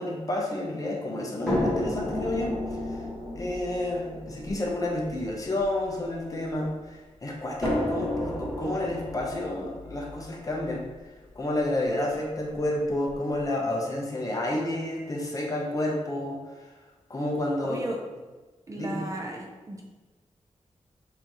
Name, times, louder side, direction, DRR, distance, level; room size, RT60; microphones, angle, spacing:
voice 1, 0.0-3.0 3.3-10.8 11.3-16.7 17.1-17.8 18.7-19.0, left 1 dB, 30° left, -2 dB, 0.7 m, -30 dB
sound 1, 1.5-6.7 7.6-11.6 12.5-12.6 13.1-13.2, left 1 dB, 5° left, 1.5 m, -32 dB
voice 2, 17.7-18.0 18.7-19.8, right 1 dB, 25° right, 0 dB, 0.4 m, -35 dB
6.7 x 2.7 x 2.9 m, 1.2 s
wide cardioid pair, 180°, 12 cm